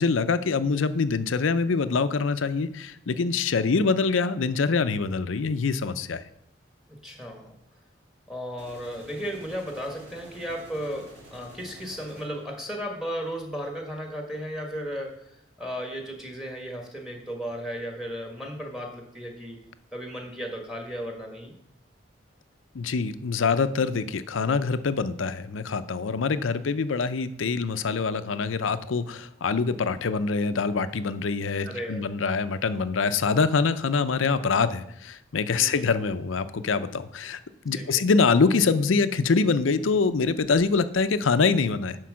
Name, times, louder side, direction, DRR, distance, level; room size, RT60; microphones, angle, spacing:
voice 1, 0.0-6.2 22.7-37.4 37.6-42.0, left 4 dB, 85° left, 12 dB, 0.6 m, -24 dB
voice 2, 6.9-7.5 8.3-19.6 19.9-21.5 31.6-32.0 35.5-35.9 37.7-38.0, equal, ahead, 2 dB, 1.4 m, -35 dB
sound 1, 8.6-12.6, right 1 dB, 65° right, 3.1 m, -49 dB
10.5 x 4.6 x 6.2 m, 0.76 s
head